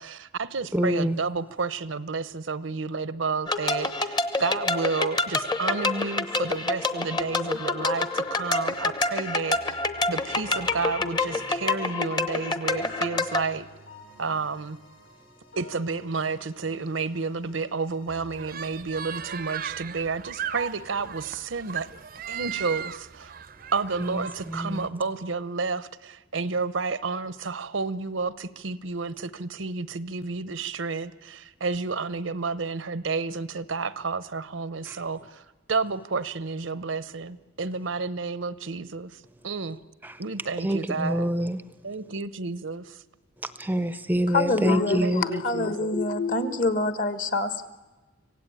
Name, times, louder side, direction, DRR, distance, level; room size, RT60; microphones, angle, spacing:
voice 1, 0.0-9.6 10.1-13.7 14.2-14.8 15.6-21.9 22.3-23.3 23.7-35.4 35.7-39.8 40.2-41.3 41.8-43.0 45.0-46.0, right 4 dB, 75° right, 0.8 m, -31 dB
voice 2, 0.7-1.2 24.0-24.9 34.9-35.0 40.0-40.1 40.6-41.6 43.4-45.2, equal, 10° right, 0.6 m, -26 dB
sound 1, 3.5-13.4, left 3 dB, 20° left, 1.0 m, -27 dB
sound 2, 7.0-18.4, equal, 75° left, 6.5 m, -50 dB
sound 3, 18.4-24.9, right 8 dB, 45° right, 0.6 m, -37 dB
voice 3, 44.3-47.7, left 3 dB, 45° left, 1.5 m, -26 dB
25.5 x 17.0 x 8.9 m
head